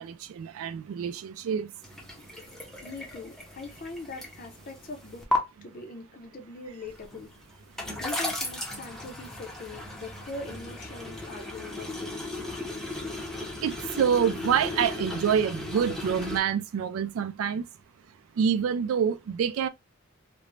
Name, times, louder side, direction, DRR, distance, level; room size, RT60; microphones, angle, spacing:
voice 1, 0.0-1.7 13.6-17.6 18.4-19.7, right 7 dB, 90° right, 0.3 m, -27 dB
sound 1, 1.8-5.4 6.9-16.4, left 2 dB, ahead, 0.6 m, -35 dB
voice 2, 2.8-5.3 5.6-7.3 8.0-12.2, left 3 dB, 45° left, 0.5 m, -41 dB
2.5 x 2.0 x 3.0 m
head